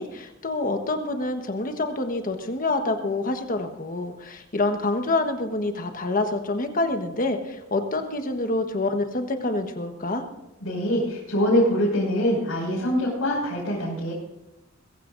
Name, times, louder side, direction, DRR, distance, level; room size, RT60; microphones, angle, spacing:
voice 1, 0.0-10.2, left 2 dB, 40° left, 6 dB, 1.3 m, -27 dB
voice 2, 10.6-14.1, equal, 90° left, -7 dB, 6.1 m, -24 dB
22.5 x 15.5 x 2.6 m, 0.91 s
head